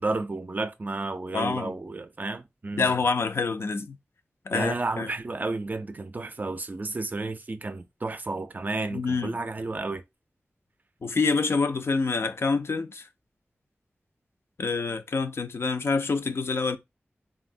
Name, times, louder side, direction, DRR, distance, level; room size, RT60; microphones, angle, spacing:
voice 1, 0.0-2.9 4.5-10.0, right 3 dB, 40° right, 0.4 m, -32 dB
voice 2, 1.3-1.8 2.8-4.0 4.5-5.1 8.9-9.4 11.0-13.1 14.6-16.8, left 4 dB, 70° left, 0.4 m, -27 dB
3.5 x 2.0 x 2.5 m
wide cardioid pair, 55°, 4 cm